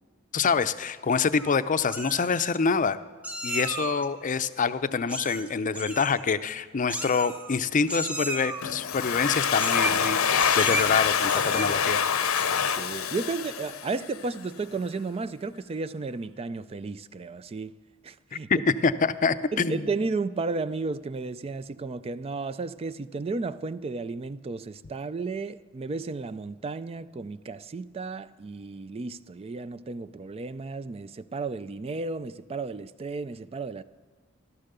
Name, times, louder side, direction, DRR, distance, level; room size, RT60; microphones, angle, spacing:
voice 1, 0.3-3.0 3.4-12.0 18.5-19.9, left 5 dB, 40° left, 0.5 m, -26 dB
Meow, 1.1-1.6 1.9-2.6 3.2-4.1 5.1-5.5 5.7-6.2 6.9-7.6 7.9-8.6 9.5-10.1 10.4-10.9 11.3-11.9 12.3-12.7, right 1 dB, 5° right, 1.0 m, -34 dB
Domestic sounds home sounds, 8.6-14.2, left 7 dB, 85° left, 0.8 m, -26 dB
voice 2, 12.6-17.8 18.0-18.5 19.5-33.8, right 3 dB, 30° right, 0.4 m, -33 dB
15.0 x 12.5 x 6.7 m
head